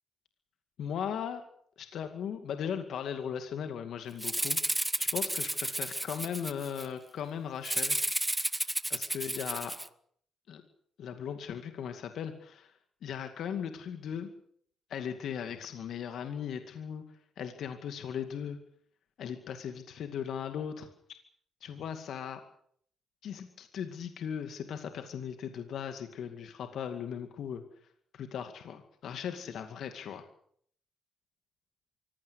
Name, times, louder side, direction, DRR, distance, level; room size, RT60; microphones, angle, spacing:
voice 1, 0.8-1.4 1.8-8.0 8.9-9.7 10.5-10.6 11.0-12.7 13.0-14.3 14.9-17.0 17.4-18.6 19.2-20.9 21.6-22.4 23.2-27.6 28.1-30.2, left 8 dB, 70° left, 7 dB, 2.3 m, -38 dB
Rattle (instrument), 4.2-6.9 7.6-9.9, right 1 dB, 10° right, 1.2 m, -32 dB
24.5 x 16.0 x 8.2 m, 0.63 s
cardioid pair, 90°, 0 cm